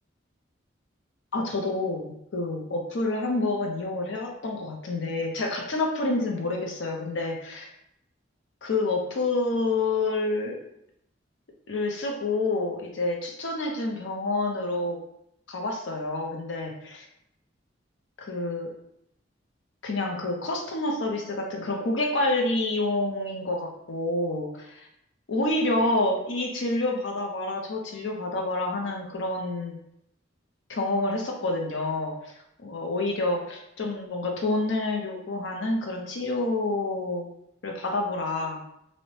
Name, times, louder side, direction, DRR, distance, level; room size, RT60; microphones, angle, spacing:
voice 1, 1.3-7.7 8.6-10.6 11.7-15.0 15.5-17.0 18.2-18.7 19.8-24.9 25.3-29.8 30.7-32.3 32.6-37.3 37.6-38.6, left 2 dB, 70° left, 1 dB, 0.5 m, -28 dB
2.6 x 2.0 x 3.1 m, 0.78 s
head